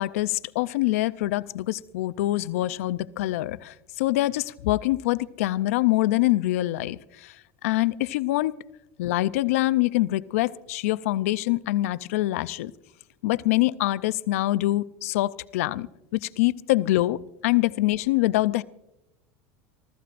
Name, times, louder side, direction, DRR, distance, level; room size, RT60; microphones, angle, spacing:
voice 1, 0.0-7.3 7.6-8.5 9.0-12.7 13.2-18.6, left 17 dB, 80° left, 15 dB, 0.5 m, -25 dB
28.5 x 14.5 x 2.5 m, 0.90 s
supercardioid pair, 130°, 8 cm